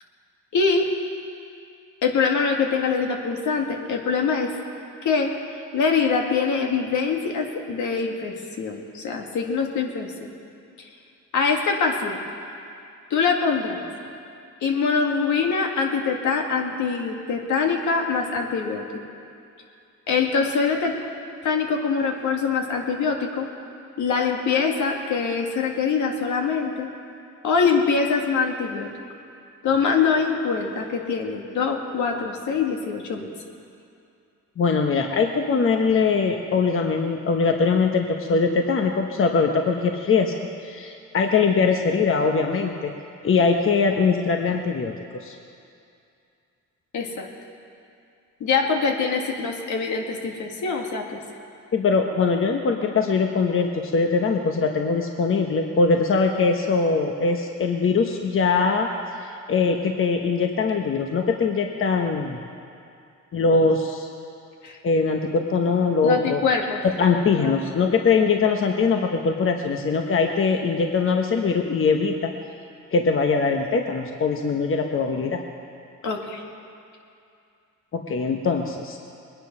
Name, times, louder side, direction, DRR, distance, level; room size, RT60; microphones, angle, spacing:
voice 1, 0.5-0.9 2.0-4.5 5.0-5.3 5.7-10.3 11.3-12.2 13.1-13.8 14.6-18.8 20.1-21.0 21.4-23.5 24.0-26.9 27.4-28.9 29.6-33.3 46.9-47.3 48.4-51.2 64.6-64.8 66.0-66.8 67.4-67.5 76.0-76.4, left 5 dB, 75° left, 1 dB, 2.1 m, -24 dB
voice 2, 34.6-40.3 40.6-42.9 43.2-45.3 51.7-58.9 59.2-62.4 63.3-64.1 64.8-66.4 67.0-72.3 72.9-75.4 77.9-79.0, left 4 dB, 45° left, 3 dB, 1.1 m, -22 dB
21.0 x 10.0 x 6.1 m, 2.5 s
cardioid pair, 90°, 30 cm